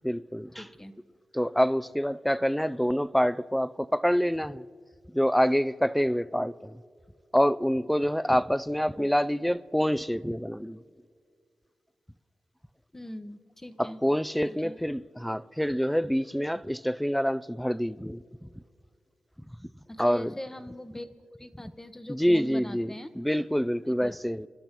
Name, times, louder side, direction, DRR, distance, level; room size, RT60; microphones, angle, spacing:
voice 1, 0.0-0.6 1.3-4.6 5.1-6.8 7.3-10.8 13.8-18.5 20.0-20.3 22.1-22.9 23.2-24.5, equal, ahead, 0.3 m, -26 dB
voice 2, 0.6-0.9 9.0-9.1 12.9-14.0 14.4-14.8 19.9-23.1 24.0-24.2, left 1 dB, 20° left, 0.9 m, -42 dB
28.0 x 12.0 x 3.0 m
cardioid pair, 55°, 2 cm